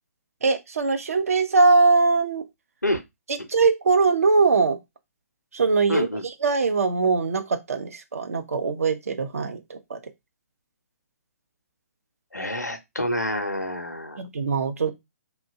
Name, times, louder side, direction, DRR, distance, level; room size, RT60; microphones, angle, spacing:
voice 1, 0.4-2.5 3.5-4.8 5.5-6.1 6.4-10.0 14.2-14.9, right 4 dB, 60° right, 0.5 m, -21 dB
voice 2, 5.9-6.2 12.3-14.2, left 1 dB, 90° left, 0.5 m, -28 dB
2.7 x 2.2 x 2.5 m
figure-of-eight pair, 130°, 9 cm